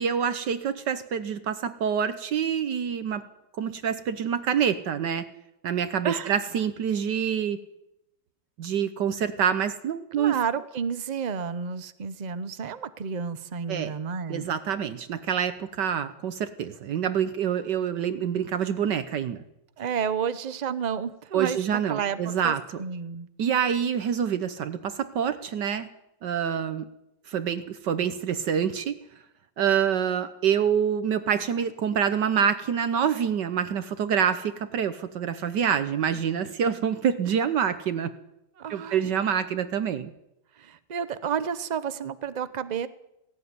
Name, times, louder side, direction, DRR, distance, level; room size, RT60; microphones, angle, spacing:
voice 1, 0.0-3.2 3.6-5.3 5.6-7.6 8.6-10.4 13.7-13.9 14.3-19.4 21.3-22.8 23.4-25.9 26.2-26.9 27.3-29.0 29.6-38.1 38.7-40.1, right 8 dB, 70° right, 11 dB, 1.5 m, -26 dB
voice 2, 10.2-14.5 19.8-23.3 38.6-39.1 40.6-42.9, right 7 dB, 45° right, 13 dB, 0.5 m, -31 dB
17.5 x 17.0 x 9.6 m, 0.88 s
omnidirectional pair, 2.0 m